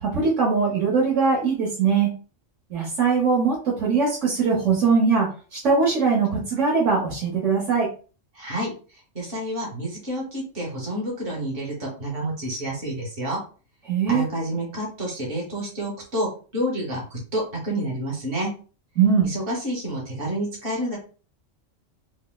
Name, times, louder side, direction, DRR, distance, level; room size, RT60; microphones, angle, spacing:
voice 1, 0.0-2.1 2.7-7.9 13.9-14.2 19.0-19.3, right 5 dB, 70° right, -2 dB, 1.4 m, -21 dB
voice 2, 8.3-8.7 9.1-13.4 14.1-18.5 19.2-21.0, right 1 dB, 45° right, -1 dB, 1.4 m, -29 dB
4.7 x 2.1 x 2.3 m, 0.36 s
omnidirectional pair, 1.3 m